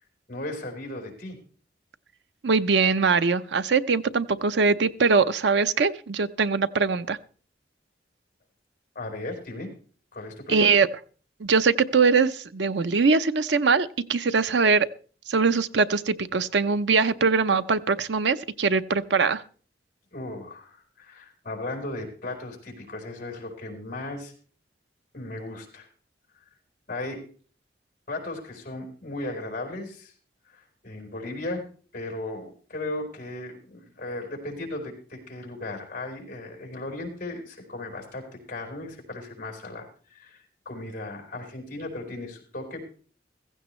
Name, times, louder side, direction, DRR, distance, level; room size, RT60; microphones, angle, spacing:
voice 1, 0.3-1.4 8.9-9.7 10.1-10.6 20.1-24.3 25.1-25.9 26.9-27.2 28.1-30.1 30.5-31.6 31.9-43.0, left 2 dB, 50° left, 2 dB, 4.3 m, -36 dB
voice 2, 2.4-7.2 10.5-10.9 11.4-14.9 15.3-19.4, right 4 dB, 85° right, 12 dB, 0.6 m, -22 dB
15.5 x 15.0 x 3.2 m, 0.41 s
head